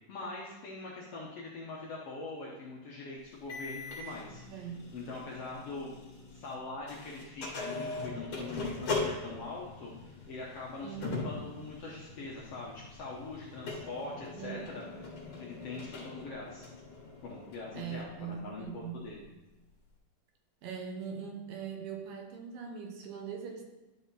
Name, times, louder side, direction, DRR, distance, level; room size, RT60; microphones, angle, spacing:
voice 1, 0.1-5.9 6.3-14.8 15.4-16.7 17.2-19.3, left 3 dB, 70° left, -4 dB, 1.5 m, -43 dB
sound 1, 3.5-6.6 6.9-18.0, left 3 dB, 45° left, 2.2 m, -41 dB
voice 2, 4.5-4.8 10.8-11.4 14.4-14.7 17.7-19.0 20.6-23.7, right 7 dB, 80° right, 3 dB, 2.6 m, -41 dB
11.0 x 4.1 x 4.0 m, 1.0 s
omnidirectional pair, 3.8 m